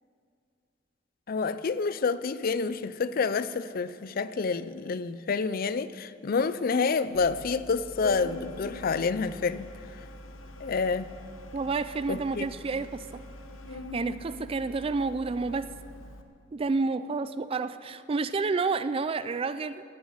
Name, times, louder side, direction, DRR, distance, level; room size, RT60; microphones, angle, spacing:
voice 1, 1.3-9.7 10.6-11.1 12.1-12.5, left 4 dB, 45° left, 14 dB, 0.4 m, -28 dB
Organ, 7.1-16.2, left 1 dB, 85° left, 1.0 m, -42 dB
voice 2, 11.5-13.1 13.9-15.7 16.5-19.8, right 4 dB, 30° right, 14 dB, 0.3 m, -29 dB
17.0 x 7.2 x 8.7 m, 2.4 s
head